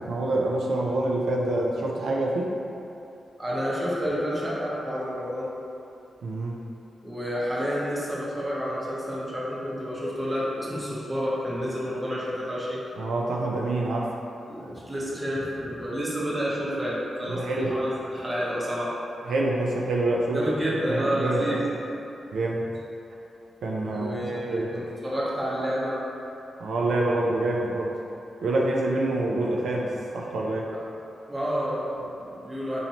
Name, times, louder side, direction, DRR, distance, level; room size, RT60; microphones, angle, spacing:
voice 1, 0.0-2.5 6.2-6.6 13.0-14.2 17.3-17.8 19.3-20.4 20.9-21.6 22.3-22.7 23.6-24.8 26.6-28.0 28.4-30.7, right 2 dB, 85° right, -2 dB, 0.4 m, -26 dB
voice 2, 3.4-5.5 7.0-12.8 14.5-18.9 20.3-21.6 23.9-26.0 30.7-30.8 31.3-32.8, equal, 10° right, -7 dB, 0.6 m, -29 dB
4.3 x 2.7 x 2.8 m, 2.7 s
wide cardioid pair, 175°, 0 cm